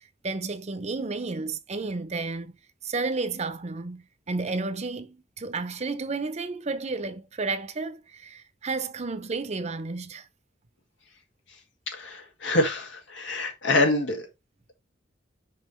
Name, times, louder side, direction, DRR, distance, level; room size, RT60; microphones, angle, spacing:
voice 1, 0.0-2.5 2.8-10.3, right 3 dB, 40° right, 0.7 m, -32 dB
voice 2, 11.9-14.3, left 2 dB, 90° left, 2.0 m, -26 dB
5.6 x 5.5 x 3.1 m
head